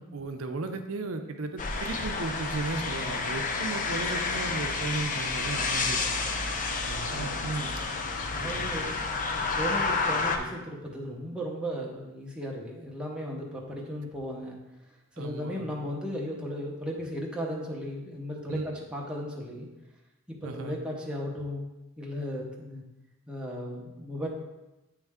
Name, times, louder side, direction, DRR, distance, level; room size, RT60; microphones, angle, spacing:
voice 1, 0.0-6.2 6.9-7.8 8.4-8.7 15.2-15.7 18.5-18.6 20.4-20.8, right 3 dB, 70° right, 6 dB, 0.6 m, -35 dB
sound 1, 1.6-10.4, left 4 dB, 35° left, 0.5 m, -30 dB
voice 2, 7.0-7.6 8.3-14.6 15.1-19.7 20.3-21.7 22.0-22.8 23.3-24.3, equal, 5° right, -3 dB, 0.8 m, -36 dB
9.1 x 3.2 x 3.6 m, 1.0 s
head